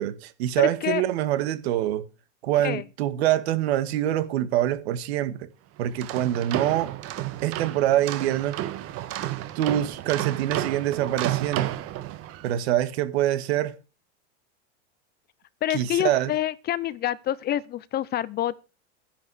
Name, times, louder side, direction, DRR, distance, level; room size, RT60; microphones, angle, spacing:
voice 1, 0.0-2.0 2.4-5.5 5.8-6.9 7.4-8.6 9.6-11.7 12.4-13.8 15.7-16.3, right 12 dB, 80° right, 1.8 m, -25 dB
voice 2, 0.6-1.0 2.6-2.8 15.6-18.6, left 12 dB, 30° left, 0.7 m, -27 dB
sound 1, 5.8-12.5, right 14 dB, 45° right, 1.6 m, -31 dB
10.5 x 10.5 x 4.9 m
supercardioid pair, 130°, 32 cm